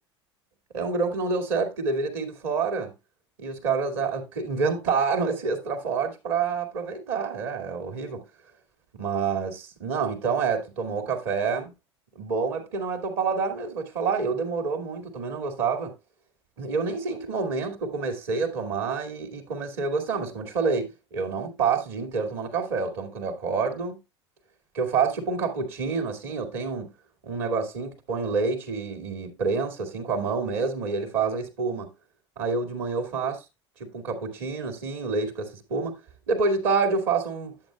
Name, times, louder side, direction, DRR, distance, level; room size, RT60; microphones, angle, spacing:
voice 1, 0.7-2.9 3.4-8.2 8.9-11.7 12.2-15.9 16.6-24.0 24.7-26.9 27.2-31.9 32.4-33.4 33.8-35.9 36.3-37.5, right 5 dB, 60° right, 2.1 m, -28 dB
10.5 x 7.9 x 2.2 m
figure-of-eight pair, 75°, 15 cm